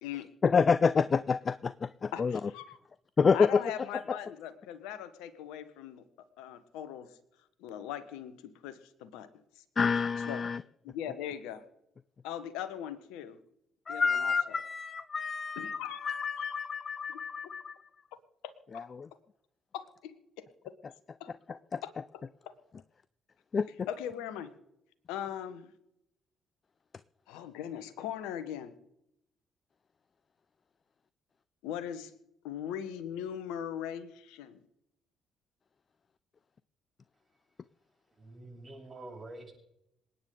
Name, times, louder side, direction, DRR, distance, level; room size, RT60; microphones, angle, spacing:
voice 1, 0.4-1.7 2.2-2.4 3.2-3.6 4.1-4.2 9.8-10.6 13.9-17.8 18.7-19.1 21.5-21.8 23.5-23.9, left 5 dB, 40° left, 17 dB, 0.5 m, -28 dB
voice 2, 2.5-2.8 3.3-6.0 6.4-7.1 7.6-9.3 9.6-9.7 10.3-10.4 10.8-11.6 12.2-13.4 13.9-14.6 15.6-16.5 17.1-17.2 18.4-18.9 19.7-20.7 21.2-21.3 21.8-21.9 23.9-24.5 25.1-25.7 27.3-28.7 31.6-32.1 32.4-34.6, left 10 dB, 70° left, 13 dB, 1.2 m, -40 dB
voice 3, 38.2-39.5, right 2 dB, 30° right, -4 dB, 7.5 m, -46 dB
27.0 x 9.6 x 3.9 m, 0.82 s
hypercardioid pair, 45°, 0 cm